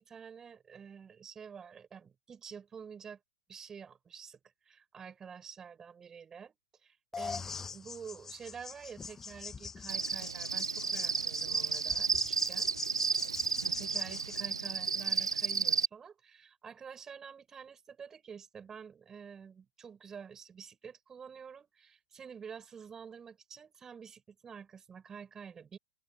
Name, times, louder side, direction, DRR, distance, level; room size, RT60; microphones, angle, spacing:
voice 1, 0.0-3.2 3.5-6.5 6.8-12.7 13.6-25.8, right 6 dB, 20° right, 5.3 m, -49 dB
sound 1, 7.1-14.4, left 5 dB, 15° left, 1.1 m, -44 dB
Cricket, 9.9-15.9, right 5 dB, 80° right, 0.3 m, -32 dB
open air
figure-of-eight pair, 100°, 3 cm